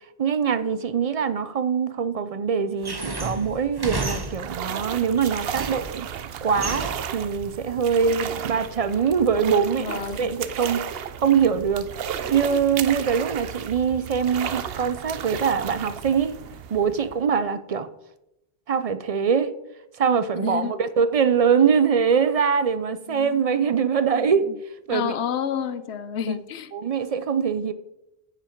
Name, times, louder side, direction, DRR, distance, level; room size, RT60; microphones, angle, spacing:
voice 1, 0.2-6.1 6.4-10.8 11.2-11.9 12.3-16.4 16.7-17.9 18.7-19.5 20.0-24.5 24.9-25.1 26.7-27.7, right 6 dB, 45° right, 12 dB, 0.5 m, -23 dB
sound 1, 2.8-4.7 5.2-6.0 6.5-7.2, right 3 dB, 25° right, 0.8 m, -31 dB
sound 2, 3.6-17.4, right 8 dB, 70° right, 0.8 m, -34 dB
voice 2, 9.8-10.4 20.4-20.7 23.1-24.6 24.9-26.7, left 8 dB, 85° left, 13 dB, 0.9 m, -31 dB
9.8 x 7.8 x 4.5 m, 0.89 s
omnidirectional pair, 1.1 m